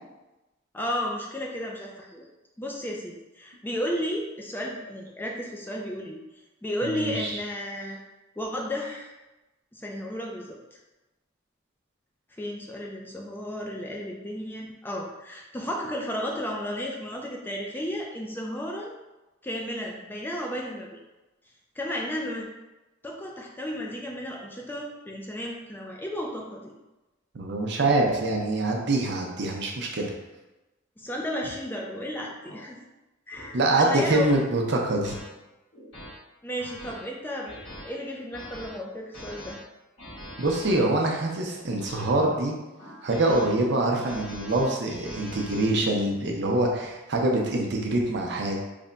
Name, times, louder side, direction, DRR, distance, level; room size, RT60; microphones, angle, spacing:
voice 1, 0.7-2.2 2.6-6.2 6.6-8.0 8.4-9.1 9.7-10.8 12.4-18.9 19.4-21.0 21.8-22.5 23.0-26.7 31.0-32.8 33.3-34.3 36.4-37.6 37.8-39.6, equal, 10° left, -1 dB, 0.3 m, -33 dB
voice 2, 6.8-7.4 27.3-30.1 33.5-35.2 40.4-42.5 43.0-48.6, right 2 dB, 60° right, 0 dB, 0.6 m, -25 dB
sound 1, 31.6-31.8 32.4-32.6 33.3-33.5 34.2-34.4 35.0-35.2 35.7-36.1 36.6-36.9 37.4-37.8 38.3-38.7 39.1-39.5 40.0-40.8 41.4-42.1 42.8-43.5 43.9-45.7, equal, 70° left, 1.4 m, -43 dB
3.4 x 2.2 x 3.8 m, 1.0 s
head